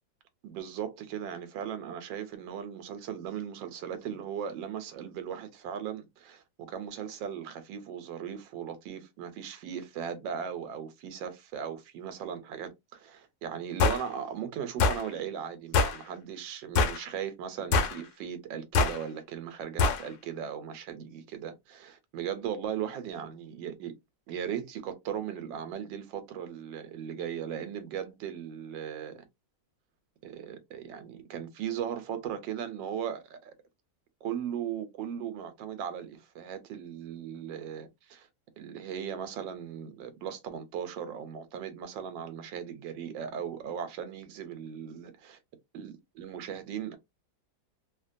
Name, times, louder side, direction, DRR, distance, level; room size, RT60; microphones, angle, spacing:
voice 1, 0.4-23.9 24.3-29.2 30.2-33.5 34.2-38.3 38.6-45.4 45.7-47.0, right 8 dB, 80° right, 1.3 m, -38 dB
sound 1, 13.8-14.0 14.8-15.0 15.7-16.0 16.8-17.0 17.7-18.0 18.7-19.0 19.8-20.0, left 4 dB, 75° left, 1.2 m, -24 dB
3.0 x 2.2 x 2.5 m
omnidirectional pair, 2.0 m